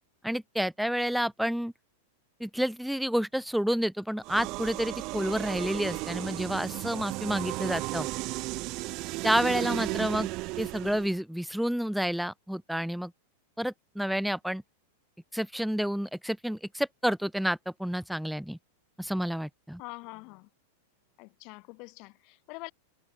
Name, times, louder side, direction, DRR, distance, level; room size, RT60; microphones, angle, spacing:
voice 1, 0.2-1.7 2.4-8.1 9.2-10.3 10.6-13.1 13.6-14.6 15.3-18.6 19.0-19.8, equal, ahead, 0.4 m, -29 dB
sound 1, 4.2-11.2, right 23 dB, 40° right, 2.9 m, -34 dB
voice 2, 19.8-20.5 21.2-22.7, left 28 dB, 40° left, 2.1 m, -44 dB
supercardioid pair, 150°, 0 cm